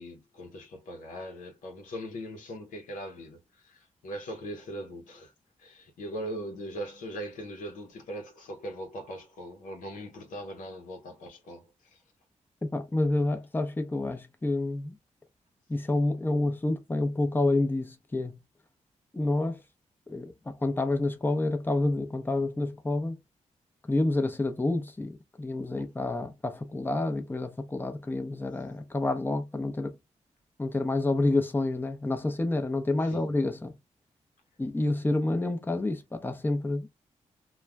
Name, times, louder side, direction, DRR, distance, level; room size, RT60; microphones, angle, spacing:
voice 1, 0.0-5.3 5.6-12.0 33.0-33.2, equal, 85° left, 0.8 m, -40 dB
voice 2, 12.6-15.0 15.7-18.4 19.1-19.6 20.1-23.2 23.9-30.0 30.6-33.7 34.6-36.9, left 2 dB, 15° left, 0.6 m, -28 dB
2.4 x 2.2 x 3.3 m
cardioid pair, 70°, 13 cm